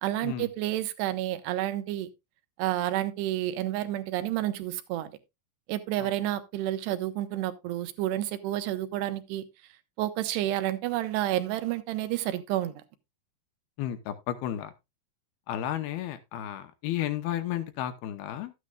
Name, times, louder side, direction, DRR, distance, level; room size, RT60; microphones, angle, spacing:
voice 1, 0.0-2.1 2.6-5.1 5.7-9.4 10.0-12.7, right 14 dB, 85° right, 3.0 m, -30 dB
voice 2, 13.8-14.7 15.5-18.5, left 12 dB, 75° left, 2.7 m, -33 dB
13.0 x 9.6 x 2.3 m
omnidirectional pair, 4.7 m